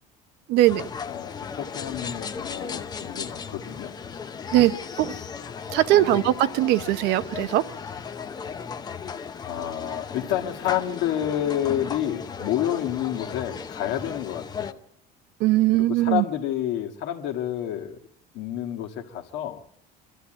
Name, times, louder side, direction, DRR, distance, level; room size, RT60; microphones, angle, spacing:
voice 1, 0.5-0.8 4.5-5.1 5.7-7.6 15.4-16.2, right 15 dB, 65° right, 0.8 m, -20 dB
sound 1, 0.6-14.7, left 6 dB, 20° left, 0.8 m, -36 dB
voice 2, 1.1-3.9 5.2-5.3 5.9-6.3 9.4-14.8 15.7-18.0 18.3-19.6, left 11 dB, 65° left, 1.8 m, -29 dB
21.5 x 13.5 x 8.9 m
cardioid pair, 155°, 19 cm